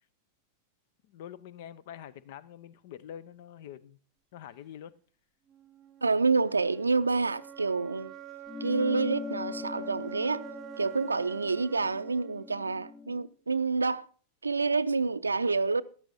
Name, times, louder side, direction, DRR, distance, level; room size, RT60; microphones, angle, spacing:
voice 1, 1.0-4.0 4.3-5.0, left 10 dB, 50° left, 0.7 m, -45 dB
sound 1, 5.5-13.4, right 10 dB, 30° right, 0.8 m, -48 dB
voice 2, 6.0-8.1 8.6-10.5 10.8-14.1 14.4-15.8, right 4 dB, 80° right, 0.5 m, -28 dB
sound 2, 8.5-13.3, left 4 dB, 25° left, 0.8 m, -41 dB
13.5 x 11.0 x 4.2 m
figure-of-eight pair, 90°, 0 cm